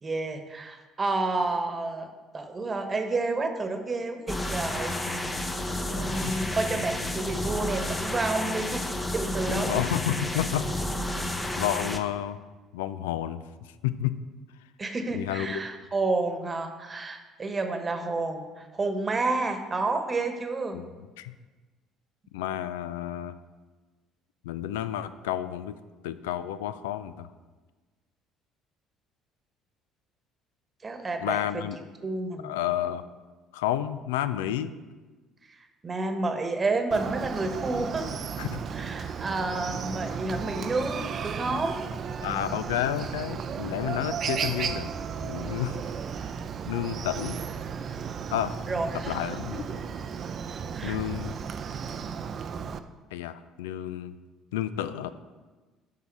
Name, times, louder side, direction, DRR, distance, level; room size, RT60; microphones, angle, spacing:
voice 1, 0.0-5.3 5.9-9.9 14.8-20.8 30.8-31.6 32.0-32.5 35.8-38.1 38.7-41.8 48.7-49.1 50.8-51.0, right 3 dB, 30° right, 6 dB, 1.2 m, -30 dB
sound 1, 4.3-12.0, left 1 dB, 20° left, 0.9 m, -31 dB
voice 2, 5.9-6.4 9.5-10.7 11.5-12.4 12.7-14.2 15.1-15.6 20.7-20.9 21.2-21.3 22.3-23.4 24.4-25.7 26.0-27.3 31.2-31.8 32.4-33.0 33.5-34.7 38.4-38.6 42.2-44.9 45.2-45.8 46.7-47.4 48.3-48.6 49.1-49.6 50.8-51.3 53.1-54.1 54.5-55.1, left 11 dB, 80° left, 14 dB, 0.3 m, -31 dB
Chicken rooster, 36.9-52.8, right 6 dB, 50° right, 0.5 m, -34 dB
9.4 x 5.6 x 4.7 m, 1.3 s
hypercardioid pair, 55°, 0 cm